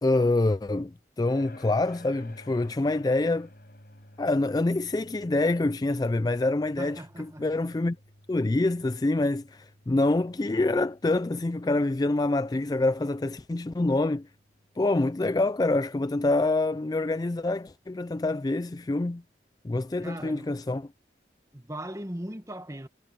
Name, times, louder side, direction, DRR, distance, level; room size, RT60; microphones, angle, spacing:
voice 1, 0.0-3.5 4.2-8.0 8.3-14.3 14.8-19.2 19.6-20.9, left 2 dB, 20° left, 0.3 m, -26 dB
sound 1, 1.2-16.1, left 1 dB, 55° left, 5.0 m, -54 dB
voice 2, 6.8-7.4 20.0-20.5 21.5-22.9, right 1 dB, 15° right, 1.4 m, -38 dB
head